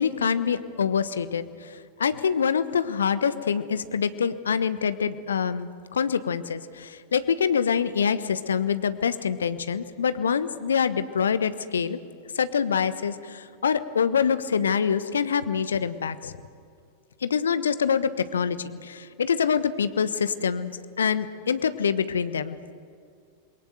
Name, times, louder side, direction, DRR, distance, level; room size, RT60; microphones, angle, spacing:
voice 1, 0.0-12.0 12.3-16.3 17.2-22.7, left 7 dB, 70° left, 13 dB, 1.1 m, -25 dB
28.0 x 22.5 x 8.0 m, 2.3 s
figure-of-eight pair, 90°, 0 cm